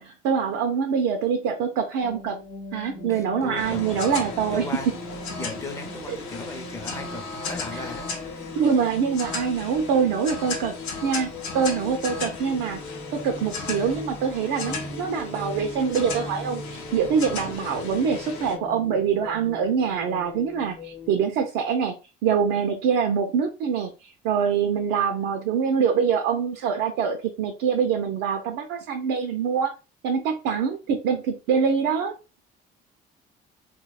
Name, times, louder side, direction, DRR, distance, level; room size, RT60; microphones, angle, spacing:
voice 1, 0.0-2.4 2.7-4.6 6.1-6.2 7.7-7.8 8.6-10.8 11.0-12.8 13.1-22.0 22.2-29.7 30.0-32.1, right 6 dB, 80° right, 0.4 m, -24 dB
sound 1, 2.0-21.2, left 2 dB, 45° left, 0.8 m, -40 dB
voice 2, 3.1-3.9 4.5-4.9 5.4-8.5, left 2 dB, 15° left, 0.5 m, -37 dB
sound 2, 3.6-18.6, left 4 dB, 80° left, 0.7 m, -36 dB
2.6 x 2.1 x 2.3 m
supercardioid pair, 75°, 21 cm